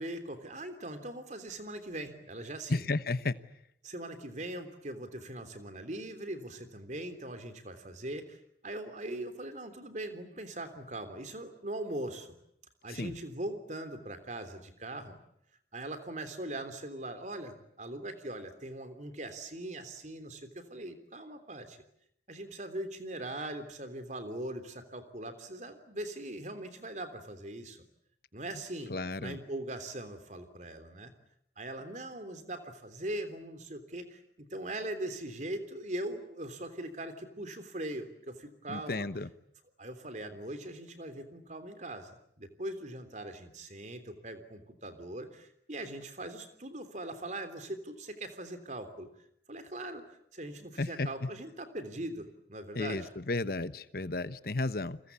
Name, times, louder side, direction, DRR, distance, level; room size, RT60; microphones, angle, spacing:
voice 1, 0.0-2.8 3.8-12.4 12.8-15.2 15.7-21.8 22.3-27.8 28.3-28.9 29.2-31.1 31.6-39.1 39.8-49.1 49.5-53.1, right 1 dB, 40° right, 9 dB, 3.3 m, -41 dB
voice 2, 2.7-3.4 12.9-13.1 28.9-29.4 38.7-39.3 50.8-51.3 52.7-55.1, left 2 dB, 55° left, 14 dB, 1.1 m, -33 dB
30.0 x 23.0 x 8.4 m, 0.72 s
head